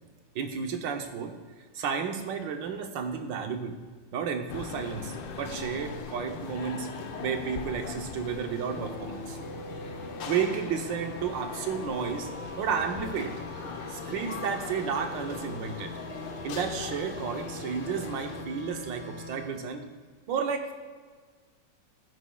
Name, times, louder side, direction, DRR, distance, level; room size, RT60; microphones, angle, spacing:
voice 1, 0.3-1.4 1.7-3.8 4.1-6.9 7.2-9.4 10.3-12.3 12.6-13.4 13.9-16.0 16.4-19.9 20.3-20.7, right 6 dB, 75° right, 5 dB, 1.5 m, -32 dB
sound 1, 4.5-18.4, left 5 dB, 85° left, 1.5 m, -40 dB
sound 2, 8.7-19.5, equal, 55° left, 1.8 m, -43 dB
15.5 x 7.1 x 2.3 m, 1.5 s
omnidirectional pair, 2.0 m